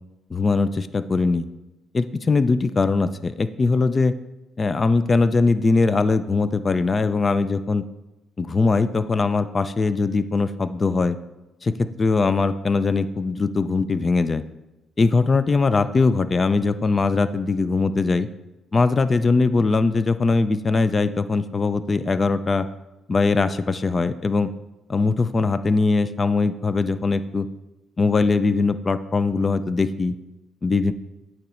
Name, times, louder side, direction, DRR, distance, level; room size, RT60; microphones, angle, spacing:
voice 1, 0.3-1.5 1.9-4.1 4.6-7.8 8.4-11.2 11.6-14.4 15.0-18.3 18.7-22.7 23.1-24.5 24.9-27.5 28.0-30.1 30.6-30.9, left 3 dB, 35° left, 13 dB, 0.4 m, -21 dB
8.7 x 3.0 x 6.1 m, 1.0 s
cardioid pair, 90°, 0 cm